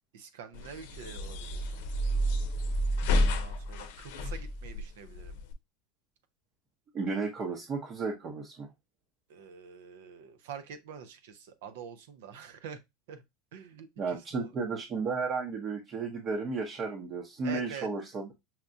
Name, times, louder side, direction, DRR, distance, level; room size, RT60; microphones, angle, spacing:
voice 1, 0.1-1.8 3.2-5.4 9.3-12.8 13.1-13.2 13.5-14.5 17.4-17.9, right 7 dB, 80° right, 0.6 m, -46 dB
sound 1, 0.5-5.5, equal, 75° left, 0.6 m, -30 dB
voice 2, 6.9-8.7 14.0-18.3, right 4 dB, 35° right, 0.8 m, -33 dB
5.7 x 2.3 x 2.5 m
supercardioid pair, 120°, 0 cm